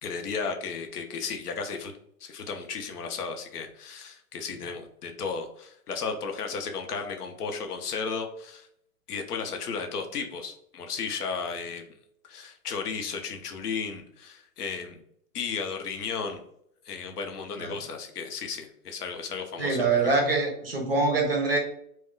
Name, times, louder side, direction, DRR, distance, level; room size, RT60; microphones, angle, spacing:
voice 1, 0.0-1.9 2.2-8.7 9.1-11.8 12.3-15.0 15.3-16.4 16.9-20.0, left 5 dB, 80° left, 5 dB, 0.7 m, -34 dB
voice 2, 19.6-21.6, right 3 dB, 40° right, 2 dB, 0.5 m, -24 dB
2.3 x 2.2 x 3.6 m, 0.71 s
hypercardioid pair, 175°, 46 cm